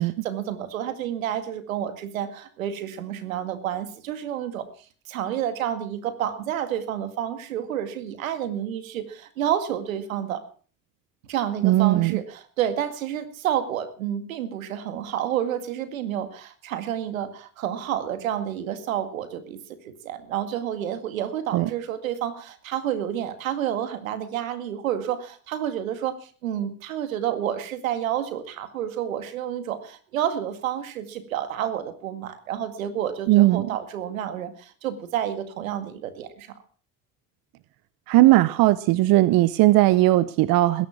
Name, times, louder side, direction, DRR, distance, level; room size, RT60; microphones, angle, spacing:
voice 1, 0.0-4.7 5.1-10.4 11.3-19.6 19.9-36.5, right 10 dB, 85° right, 10 dB, 2.1 m, -29 dB
voice 2, 11.6-12.2 21.5-21.7 33.3-33.7 38.1-40.9, right 17 dB, 60° right, 17 dB, 0.8 m, -18 dB
20.5 x 11.0 x 6.0 m, 0.43 s
hypercardioid pair, 60°, 39 cm